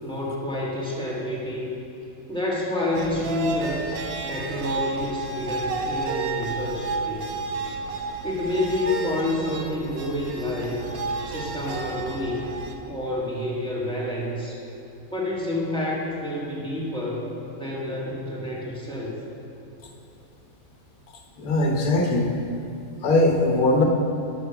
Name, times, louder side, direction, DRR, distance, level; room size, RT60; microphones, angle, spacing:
voice 1, 0.0-1.8 2.3-3.9 4.3-7.3 8.2-10.8 11.3-12.5 12.9-14.6 15.1-19.1, left 1 dB, 5° left, -6 dB, 1.8 m, -28 dB
sound 1, 2.9-12.8, right 3 dB, 85° right, 1.2 m, -31 dB
voice 2, 21.4-22.3 23.0-23.8, left 2 dB, 75° left, 2 dB, 1.4 m, -20 dB
9.5 x 6.3 x 5.7 m, 2.8 s
omnidirectional pair, 1.5 m